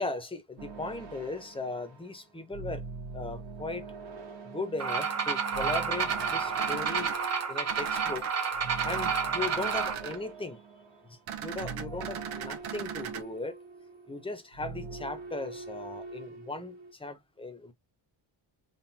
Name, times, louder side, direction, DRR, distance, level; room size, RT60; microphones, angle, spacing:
voice 1, 0.0-2.8 3.1-3.8 4.5-7.2 7.5-8.3 8.8-10.6 11.1-13.6 14.1-17.7, left 3 dB, 10° left, 0.9 m, -37 dB
sound 1, 0.6-11.2 11.5-16.9, right 4 dB, 70° right, 1.8 m, -44 dB
sound 2, 4.8-9.9, right 6 dB, 35° right, 1.1 m, -30 dB
sound 3, 6.0-7.1 7.7-8.3 8.8-9.1 9.4-10.2 11.3-13.2, right 9 dB, 90° right, 1.2 m, -39 dB
3.9 x 3.2 x 2.8 m
cardioid pair, 155°, 47 cm